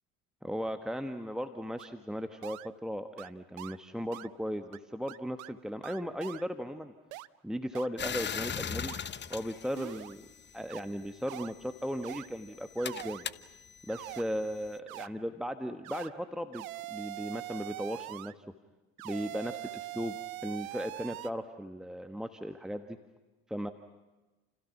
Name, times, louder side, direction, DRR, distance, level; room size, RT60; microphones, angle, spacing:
voice 1, 0.4-6.9 7.4-8.9 9.3-10.3 10.5-13.3 13.9-18.4 19.0-23.0 23.5-23.7, equal, ahead, 7 dB, 1.4 m, -37 dB
sound 1, 1.8-1.9 2.4-2.7 3.2-3.3 3.6-3.8 4.1-4.3 4.7-4.8 5.1-5.5 5.8-6.4 7.1-7.3 7.7-7.9 8.3-8.4 8.9-9.0 9.3-9.4 9.8-10.1 10.7-10.8 11.3-11.5 12.0-12.3 12.8-13.2 13.9-14.2 14.9-15.1 15.8-16.1 16.5-18.3 19.0-21.3, right 18 dB, 65° right, 0.8 m, -42 dB
sound 2, 8.0-10.6 11.5-14.8, left 7 dB, 25° left, 1.0 m, -40 dB
30.0 x 29.0 x 6.0 m, 1.1 s
figure-of-eight pair, 65°, 44 cm